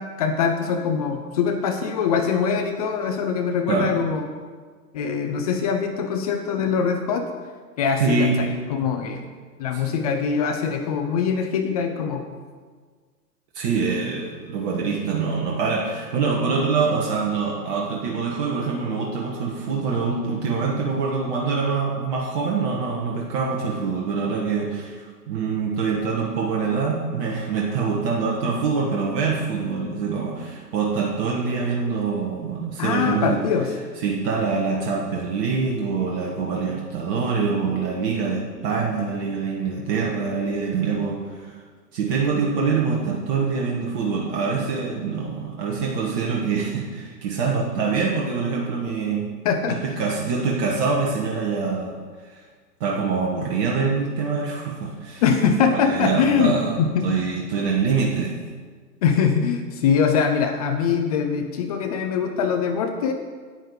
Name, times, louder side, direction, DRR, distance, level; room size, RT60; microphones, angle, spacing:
voice 1, 0.0-4.3 4.9-7.3 7.8-9.2 9.6-12.2 32.8-33.7 49.4-49.8 55.2-57.4 59.0-63.1, left 6 dB, 25° left, 5 dB, 0.6 m, -23 dB
voice 2, 3.7-4.0 8.0-8.4 9.7-9.8 13.5-33.4 34.0-41.6 41.9-49.3 49.7-52.0 52.3-52.4 52.8-55.2 55.8-56.8 57.0-58.4, right 5 dB, 35° right, -2 dB, 1.4 m, -25 dB
9.8 x 8.5 x 4.9 m, 1.6 s
figure-of-eight pair, 110°, 49 cm